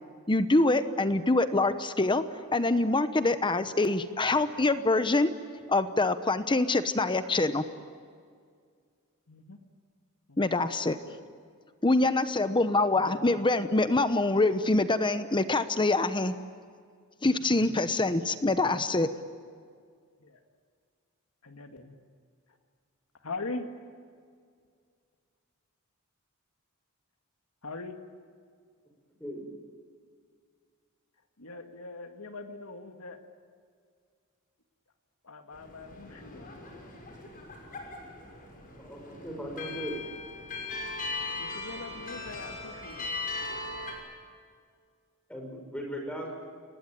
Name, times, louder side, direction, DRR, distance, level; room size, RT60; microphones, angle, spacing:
voice 1, 0.3-2.2 2.5-5.3 5.7-7.6 10.4-11.2 11.8-16.3 17.2-19.1, left 2 dB, 20° left, 11 dB, 0.9 m, -25 dB
voice 2, 9.3-9.6 10.3-10.4 13.0-13.4 20.2-20.4 21.4-22.0 23.2-23.7 27.6-28.0 31.4-33.2 35.2-36.5 41.4-43.2, left 3 dB, 85° left, 6 dB, 2.1 m, -41 dB
sound 1, 35.5-43.9, left 3 dB, 40° left, 6.4 m, -39 dB
voice 3, 38.8-40.0 45.3-46.3, equal, 5° left, 1 dB, 6.3 m, -38 dB
29.0 x 20.5 x 9.1 m, 2.1 s
head